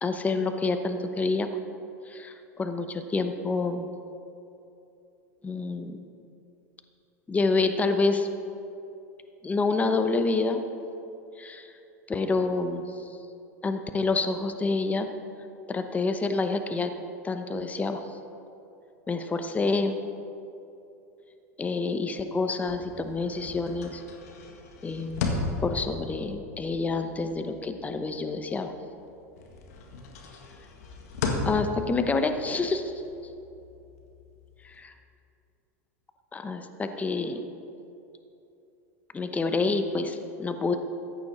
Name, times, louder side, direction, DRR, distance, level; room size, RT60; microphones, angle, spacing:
voice 1, 0.0-1.5 2.1-3.9 5.4-6.0 7.3-8.3 9.4-10.6 11.4-11.7 12.1-13.1 13.6-15.1 15.7-16.9 17.2-18.0 19.1-20.0 21.6-24.0 24.8-25.2 25.6-28.7 31.4-32.9 34.6-34.9 36.3-37.4 39.1-40.7, left 3 dB, 15° left, 7 dB, 0.9 m, -28 dB
sound 1, 22.6-29.0 29.4-34.8, left 3 dB, 70° left, 1.6 m, -36 dB
14.5 x 9.3 x 4.3 m, 2.8 s
hypercardioid pair, 95°, 8 cm